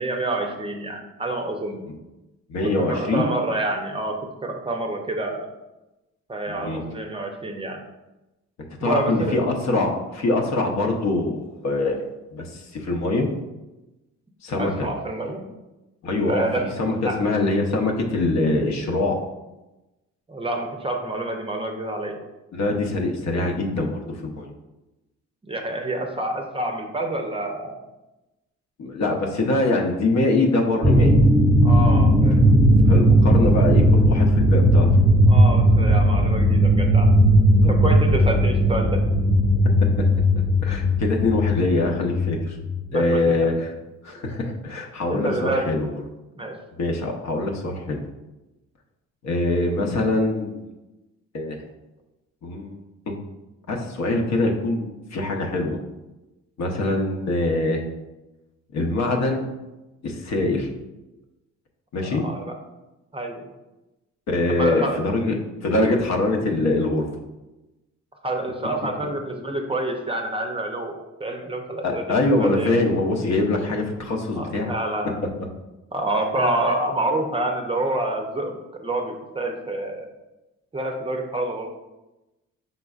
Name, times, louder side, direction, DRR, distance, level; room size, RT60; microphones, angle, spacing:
voice 1, 0.0-1.9 2.6-5.5 6.3-7.8 8.8-9.4 14.6-15.4 16.3-16.7 17.1-17.3 20.3-22.2 25.4-27.8 31.6-32.5 33.6-33.7 35.3-37.1 37.7-39.0 42.9-43.5 45.1-45.7 46.4-46.6 62.1-62.6 63.1-63.5 64.5-65.0 68.2-72.8 74.3-75.2 75.9-78.5 78.8-80.1 80.7-81.8, right 2 dB, 20° right, 3 dB, 0.5 m, -28 dB
voice 2, 2.5-3.3 6.5-6.8 8.8-12.0 12.3-13.3 14.4-14.9 16.0-16.4 16.8-19.2 22.5-24.5 28.8-31.2 32.9-34.9 37.5-37.7 39.8-40.0 40.3-42.6 42.9-43.7 44.0-45.9 46.8-48.0 49.2-50.6 51.3-51.6 52.4-53.2 53.7-55.8 56.6-57.8 58.7-59.5 60.0-60.7 61.9-62.2 64.3-65.4 65.6-67.1 71.8-74.7, left 2 dB, 60° left, 2 dB, 0.8 m, -23 dB
sound 1, 30.8-42.8, equal, 30° left, 0.9 m, -17 dB
5.4 x 3.8 x 2.4 m, 1.0 s
cardioid pair, 90°, 30 cm